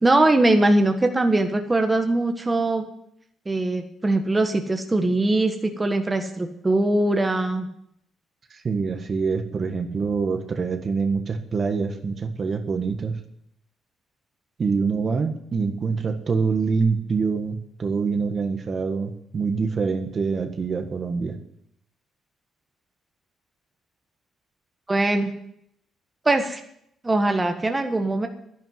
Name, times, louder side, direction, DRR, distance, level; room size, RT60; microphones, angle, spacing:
voice 1, 0.0-2.9 3.4-7.7 24.9-25.3 26.2-26.6 27.0-28.3, right 2 dB, 20° right, 5 dB, 1.5 m, -21 dB
voice 2, 8.5-13.2 14.6-21.4, right 5 dB, 45° right, 6 dB, 1.6 m, -25 dB
11.0 x 10.5 x 8.0 m, 0.74 s
cardioid pair, 90°, 0 cm